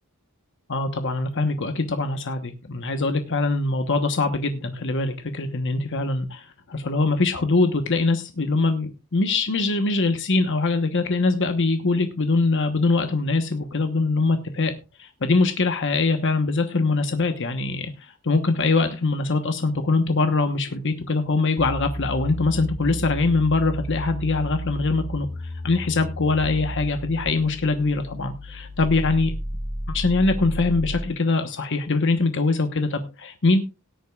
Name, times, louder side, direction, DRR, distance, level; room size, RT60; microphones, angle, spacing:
voice 1, 0.7-14.7 15.0-29.3 29.9-33.6, left 3 dB, 55° left, 7 dB, 1.1 m, -23 dB
sound 1, 21.6-31.2, right 1 dB, 65° right, 7.2 m, -33 dB
18.0 x 10.0 x 2.4 m, 0.28 s
head